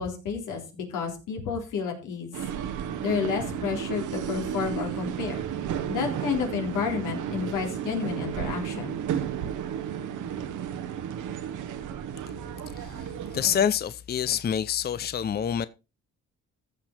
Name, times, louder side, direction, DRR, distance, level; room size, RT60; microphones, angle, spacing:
voice 1, 0.0-2.3 3.0-5.4 5.9-9.0, left 6 dB, 85° left, 3.6 m, -30 dB
sound 1, 2.3-13.6, right 9 dB, 80° right, 1.3 m, -33 dB
voice 2, 12.7-15.7, left 8 dB, 35° left, 0.5 m, -27 dB
14.5 x 6.2 x 4.4 m
cardioid pair, 90°, 30 cm